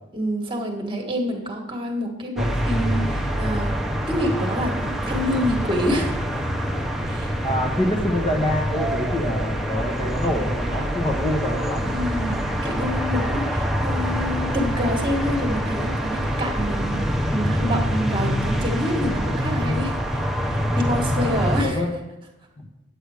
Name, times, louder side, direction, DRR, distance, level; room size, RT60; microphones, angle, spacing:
voice 1, 0.1-3.8 4.1-6.2 7.1-7.3 11.8-21.8, equal, 25° right, 1 dB, 1.5 m, -27 dB
sound 1, 2.4-21.6, equal, ahead, 0.7 m, -25 dB
voice 2, 7.4-11.9 21.6-21.9 22.6-22.7, left 1 dB, 25° left, 1 dB, 1.1 m, -25 dB
9.9 x 8.1 x 4.9 m, 0.95 s
head